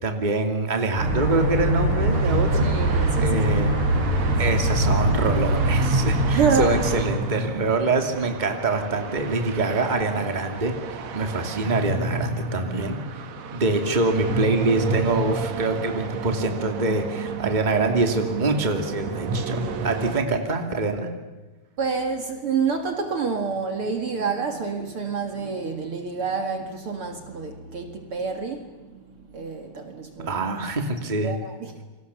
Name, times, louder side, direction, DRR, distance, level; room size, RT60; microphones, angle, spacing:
voice 1, 0.0-2.7 3.2-3.7 4.4-13.0 13.5-21.1 30.2-31.4, right 3 dB, 15° right, 5 dB, 2.5 m, -25 dB
sound 1, 1.0-6.9, right 1 dB, 85° right, 7.2 m, -22 dB
sound 2, 2.1-20.2, right 4 dB, 70° right, 2.8 m, -31 dB
voice 2, 2.6-3.4 6.3-6.8 21.8-30.4 31.2-31.8, right 5 dB, 50° right, 5 dB, 2.7 m, -28 dB
29.0 x 25.0 x 7.1 m, 1.2 s
omnidirectional pair, 3.3 m